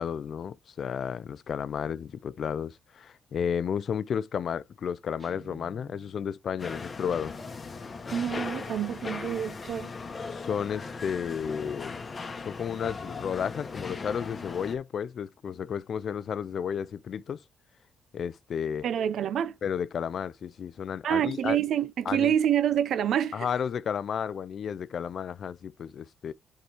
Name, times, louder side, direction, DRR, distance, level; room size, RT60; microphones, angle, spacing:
voice 1, 0.0-7.4 10.3-12.0 12.4-17.4 18.1-18.9 19.6-21.6 22.1-22.4 23.3-26.3, left 7 dB, 55° left, 0.4 m, -32 dB
Guitar, 5.2-6.4, right 4 dB, 30° right, 2.4 m, -51 dB
sound 1, 6.6-14.8, left 4 dB, 35° left, 1.2 m, -38 dB
voice 2, 8.1-9.9 18.8-19.5 21.0-23.5, right 9 dB, 70° right, 0.6 m, -27 dB
7.8 x 4.7 x 3.0 m
cardioid pair, 90°, 0 cm